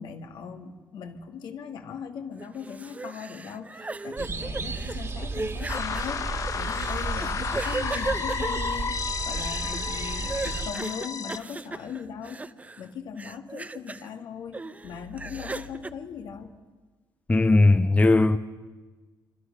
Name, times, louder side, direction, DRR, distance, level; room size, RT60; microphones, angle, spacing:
voice 1, 0.0-12.4 12.8-16.5, left 7 dB, 75° left, 2.2 m, -39 dB
sound 1, 2.4-12.9 13.2-14.1 14.5-15.9, right 3 dB, 20° right, 0.8 m, -37 dB
sound 2, 4.2-10.7, right 4 dB, 35° right, 2.2 m, -34 dB
sound 3, 5.7-11.4, left 6 dB, 45° left, 0.9 m, -32 dB
voice 2, 17.3-18.4, left 2 dB, 20° left, 0.9 m, -18 dB
25.5 x 25.0 x 6.8 m
cardioid pair, 105°, 8 cm